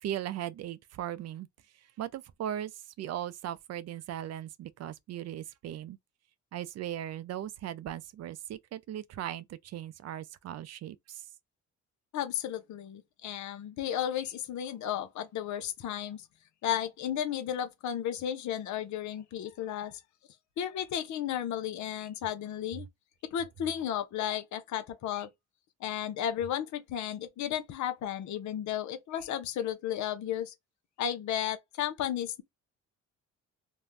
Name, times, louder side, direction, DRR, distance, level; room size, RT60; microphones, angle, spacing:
voice 1, 0.0-1.5 2.0-6.0 6.5-11.2, right 11 dB, 60° right, 0.5 m, -38 dB
voice 2, 12.1-16.2 16.6-20.0 20.6-22.9 23.2-25.3 25.8-30.5 31.0-32.4, left 10 dB, 70° left, 0.7 m, -34 dB
2.6 x 2.2 x 3.2 m
cardioid pair, 90°, 30 cm